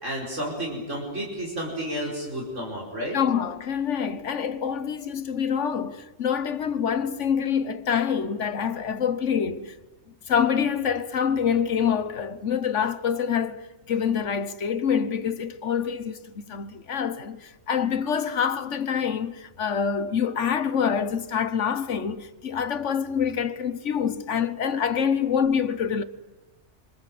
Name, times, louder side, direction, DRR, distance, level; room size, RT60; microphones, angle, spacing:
voice 1, 0.0-3.2, equal, 75° right, 5.4 m, -31 dB
voice 2, 3.1-9.7 10.3-26.0, left 7 dB, 70° left, 1.4 m, -26 dB
26.0 x 26.0 x 7.7 m
omnidirectional pair, 1.3 m